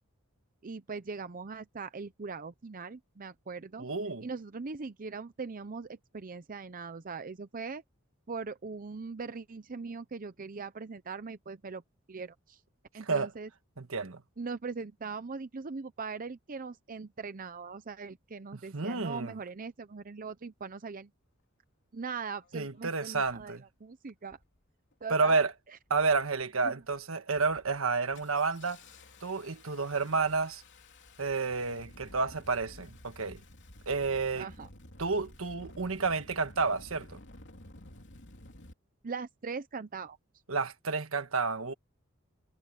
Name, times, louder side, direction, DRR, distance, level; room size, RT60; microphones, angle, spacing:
voice 1, 0.6-3.8 4.2-7.8 8.3-11.8 12.1-12.6 12.9-13.5 14.4-21.1 21.9-24.4 25.0-25.8 26.6-26.7 34.4-34.7 39.0-40.2, right 4 dB, 40° right, 0.7 m, -40 dB
voice 2, 3.8-4.2 13.1-13.3 13.8-14.2 18.7-19.3 22.5-23.6 25.1-25.5 25.9-28.8 29.2-30.6 31.2-33.4 33.9-34.5 35.0-37.2 40.5-41.7, right 4 dB, 75° right, 1.4 m, -30 dB
Engine starting, 22.4-22.5 23.2-23.5 24.2-24.6 24.9-25.4 25.9-26.4 26.8-27.0 27.4-38.7, left 1 dB, 60° left, 3.1 m, -53 dB
head